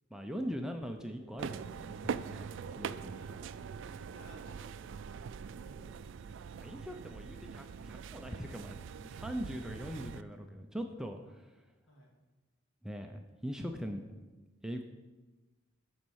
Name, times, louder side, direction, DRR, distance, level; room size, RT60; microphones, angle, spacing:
voice 1, 0.1-2.5 2.7-3.4 6.6-11.5 12.8-14.0 14.6-14.8, equal, 5° right, 4 dB, 0.5 m, -41 dB
sound 1, 0.6-6.1, right 1 dB, 25° right, 1.0 m, -60 dB
sound 2, 1.4-10.2, right 6 dB, 65° right, 0.3 m, -43 dB
voice 2, 3.0-3.3 3.8-6.0 11.9-12.2, equal, 65° left, -2 dB, 2.4 m, -59 dB
11.5 x 4.2 x 6.3 m, 1.2 s
head